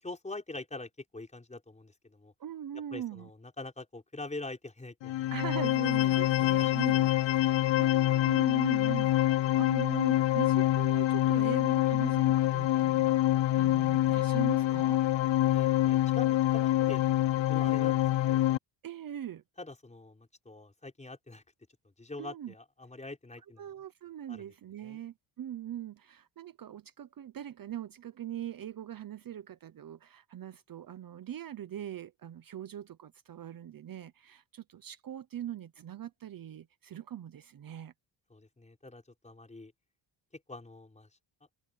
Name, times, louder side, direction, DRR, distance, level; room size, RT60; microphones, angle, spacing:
voice 1, 0.0-2.3 2.9-5.3 6.4-7.0 15.5-17.0 17.5-18.5 19.6-21.4 22.0-23.6 24.3-24.5 24.8-25.0 38.3-39.7 40.5-41.1, left 2 dB, 15° left, 5.3 m, -44 dB
voice 2, 2.4-3.3 5.3-15.0 18.8-19.4 22.2-22.5 23.6-37.9, right 10 dB, 45° right, 0.8 m, -41 dB
sound 1, 5.0-18.6, left 14 dB, 70° left, 0.7 m, -26 dB
wide cardioid pair, 145°, 46 cm